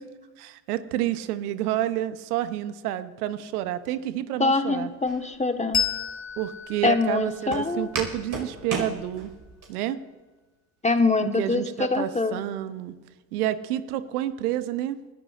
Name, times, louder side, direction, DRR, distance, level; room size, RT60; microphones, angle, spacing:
voice 1, 0.4-4.9 6.4-9.3 9.7-10.0 11.4-12.9 13.3-15.0, right 13 dB, 80° right, 13 dB, 0.8 m, -29 dB
voice 2, 4.4-5.8 6.8-7.9 10.8-12.4, left 3 dB, 15° left, 7 dB, 1.3 m, -24 dB
Walk footsteps, 5.1-9.7, right 3 dB, 45° right, 5.0 m, -36 dB
Bell, 5.7-8.8, left 7 dB, 40° left, 2.4 m, -32 dB
30.0 x 13.0 x 2.5 m, 1.2 s
hypercardioid pair, 60°, 44 cm